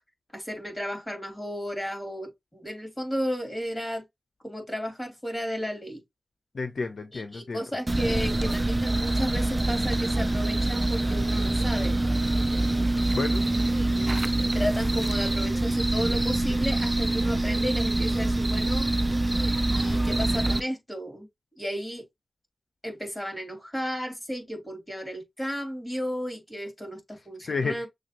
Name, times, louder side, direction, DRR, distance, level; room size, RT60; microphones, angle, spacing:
voice 1, 0.3-4.0 4.4-6.0 7.1-12.0 13.5-18.9 19.7-21.3 21.6-22.0 22.8-27.9, equal, 15° left, 2.8 m, -34 dB
voice 2, 6.5-7.6 13.1-13.5 27.5-27.9, left 4 dB, 75° left, 0.7 m, -31 dB
sound 1, 7.9-20.6, right 2 dB, 20° right, 0.5 m, -25 dB
6.4 x 2.4 x 2.9 m
wide cardioid pair, 80°, 0 cm